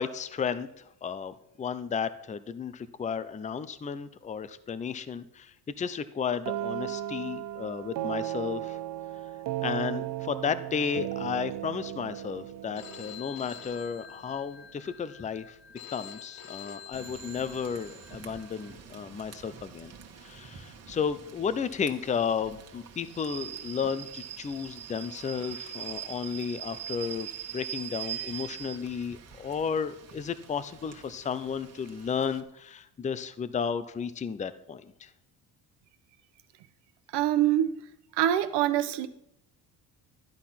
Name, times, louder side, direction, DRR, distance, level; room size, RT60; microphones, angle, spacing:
voice 1, 0.0-8.8 9.6-15.6 15.9-19.9 20.2-35.1, left 6 dB, 20° left, 13 dB, 0.6 m, -33 dB
sound 1, 6.5-14.2, right 14 dB, 55° right, 0.6 m, -36 dB
Telephone, 12.8-18.7, left 8 dB, 60° left, 1.9 m, -47 dB
Rain / Train, 16.9-32.4, right 9 dB, 40° right, 1.6 m, -43 dB
voice 2, 37.1-37.8 38.1-39.1, right 12 dB, 80° right, 10 dB, 1.2 m, -25 dB
13.0 x 10.5 x 5.8 m, 0.77 s
cardioid pair, 145°, 40 cm